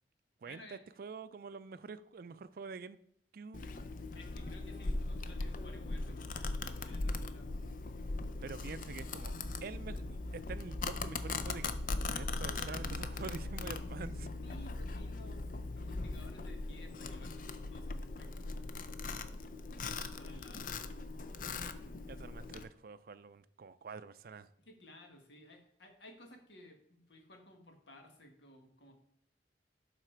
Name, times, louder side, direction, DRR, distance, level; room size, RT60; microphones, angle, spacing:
voice 1, 0.4-0.8 4.1-7.5 12.4-12.7 14.4-18.8 19.8-20.8 24.6-28.9, left 1 dB, 80° left, 1.7 m, -56 dB
voice 2, 1.0-3.0 3.3-3.8 8.4-9.3 9.6-14.3 22.1-24.5, right 4 dB, 55° right, 0.4 m, -46 dB
Domestic sounds home sounds, 3.5-22.6, left 3 dB, 50° left, 0.5 m, -40 dB
sound 1, 6.5-14.0, right 1 dB, 5° left, 0.7 m, -52 dB
11.5 x 4.2 x 4.5 m
head